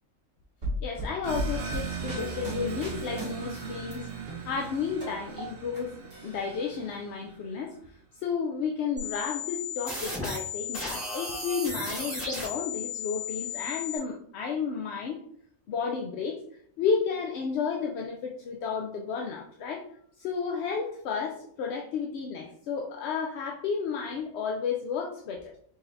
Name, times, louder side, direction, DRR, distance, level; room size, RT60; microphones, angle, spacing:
sound 1, 0.6-3.9 4.3-5.8 6.1-7.0, equal, 35° right, 1.7 m, -36 dB
voice 1, 0.8-7.7 8.2-15.2 15.7-19.8 20.2-25.6, left 5 dB, 65° left, 1 dB, 0.7 m, -32 dB
sound 2, 1.2-7.5, right 6 dB, 50° right, 0.8 m, -38 dB
sound 3, 9.0-14.0, left 4 dB, 10° left, 1.6 m, -35 dB
4.3 x 3.9 x 2.6 m, 0.65 s
omnidirectional pair, 1.4 m